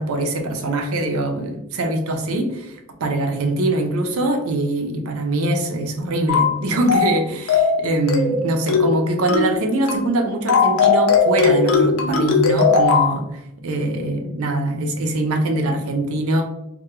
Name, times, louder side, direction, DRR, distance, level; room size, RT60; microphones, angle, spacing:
voice 1, 0.0-16.4, right 1 dB, 80° right, 4 dB, 0.5 m, -23 dB
sound 1, 6.3-6.6 6.9-7.2 7.5-7.8 8.1-8.4 8.7-9.0 9.3-9.6 9.9-10.1 10.5-13.1, left 5 dB, 65° left, 0.4 m, -17 dB
2.2 x 2.1 x 2.9 m, 0.86 s
head